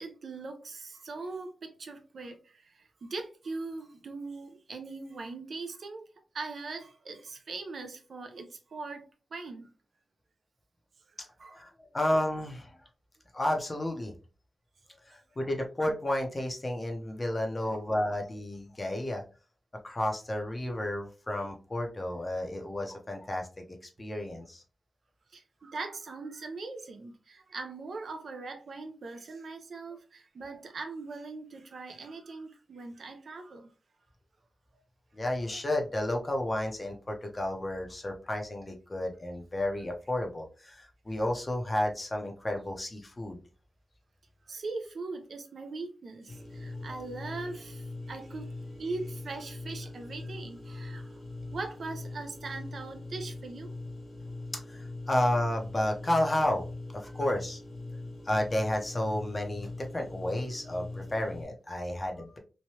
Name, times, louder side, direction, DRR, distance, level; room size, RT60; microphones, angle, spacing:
voice 1, 0.0-6.0 6.3-9.7 11.2-11.6 17.6-17.8 25.3-33.7 44.5-51.2 51.5-53.7, right 3 dB, 65° right, 0.5 m, -41 dB
voice 2, 11.5-12.8 13.3-14.1 14.9-19.2 19.8-23.6 24.0-24.6 35.1-43.4 46.7-46.8 54.5-56.7 56.9-57.6 58.2-62.4, left 1 dB, 25° left, 0.6 m, -32 dB
sound 1, 46.3-61.4, left 2 dB, 60° left, 0.8 m, -42 dB
3.1 x 2.2 x 2.7 m
wide cardioid pair, 110°, 0 cm